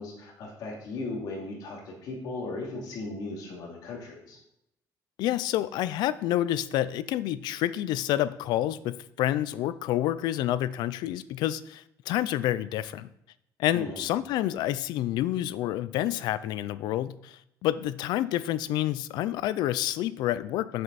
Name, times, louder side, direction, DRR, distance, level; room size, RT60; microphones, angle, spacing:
voice 1, 0.0-4.4 13.7-14.1, left 2 dB, 65° left, -1 dB, 2.7 m, -37 dB
voice 2, 5.2-13.1 13.6-20.8, left 13 dB, 90° left, 16 dB, 0.4 m, -28 dB
7.7 x 7.7 x 4.1 m, 0.79 s
cardioid pair, 165°, 7 cm